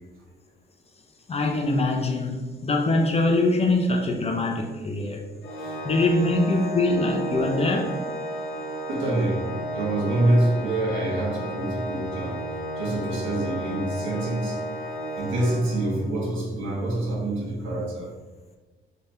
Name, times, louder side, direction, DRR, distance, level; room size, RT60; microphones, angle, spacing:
voice 1, 1.3-5.2 5.8-8.0, left 2 dB, 30° left, 0.7 m, -23 dB
Organ, 5.4-16.2, right 1 dB, 75° left, 0.9 m, -33 dB
voice 2, 8.9-14.6 15.2-18.1, right 1 dB, 80° right, 1.4 m, -26 dB
5.2 x 3.4 x 2.8 m
cardioid pair, 90°, 20 cm